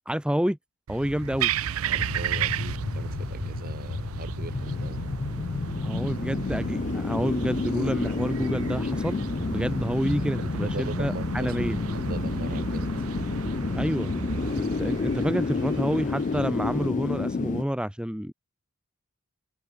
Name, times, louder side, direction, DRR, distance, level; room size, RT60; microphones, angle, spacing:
voice 1, 0.1-0.6 0.9-1.5 5.8-11.8 13.7-14.1 14.6-18.3, equal, 5° right, 1.2 m, -28 dB
sound 1, 0.9-16.9, right 7 dB, 70° right, 0.5 m, -34 dB
voice 2, 1.8-5.1 10.4-11.5 12.1-12.9, right 2 dB, 45° right, 1.8 m, -40 dB
sound 2, 1.9-17.6, left 4 dB, 35° left, 0.4 m, -30 dB
head